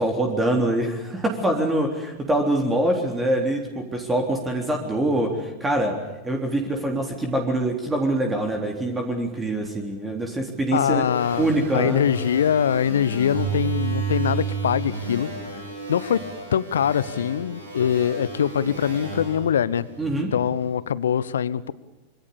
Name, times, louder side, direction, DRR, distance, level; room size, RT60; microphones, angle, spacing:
voice 1, 0.0-6.0 6.2-11.1 11.4-12.0 20.0-20.3, right 1 dB, 10° right, 2 dB, 3.8 m, -24 dB
voice 2, 10.7-15.6 15.9-19.9 20.3-21.7, left 8 dB, 65° left, 18 dB, 1.0 m, -23 dB
sound 1, 11.0-20.5, right 5 dB, 75° right, 7.8 m, -32 dB
26.0 x 24.0 x 7.0 m, 1.1 s
figure-of-eight pair, 90°, 0 cm